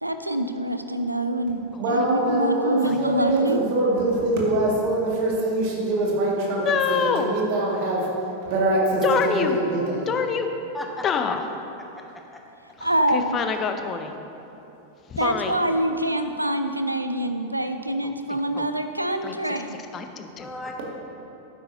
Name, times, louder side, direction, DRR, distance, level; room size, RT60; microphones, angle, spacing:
voice 1, 0.0-1.6 1.9-3.6 12.8-13.4 15.2-19.7, right 1 dB, 85° right, 8 dB, 0.5 m, -25 dB
voice 2, 1.8-8.1 8.5-10.0, right 2 dB, 45° right, -3 dB, 2.1 m, -24 dB
voice 3, 6.6-7.4 9.0-9.6 10.1-10.5 11.0-11.4 12.8-14.1 15.1-15.6 18.0-18.7 19.2-19.4 19.9-20.5, left 6 dB, 30° left, 7 dB, 0.7 m, -26 dB
voice 4, 10.7-11.1 12.0-12.4 15.2-15.5 20.4-20.9, left 1 dB, 10° left, 1 dB, 1.1 m, -38 dB
12.0 x 9.6 x 2.8 m, 2.9 s
figure-of-eight pair, 90°, 0 cm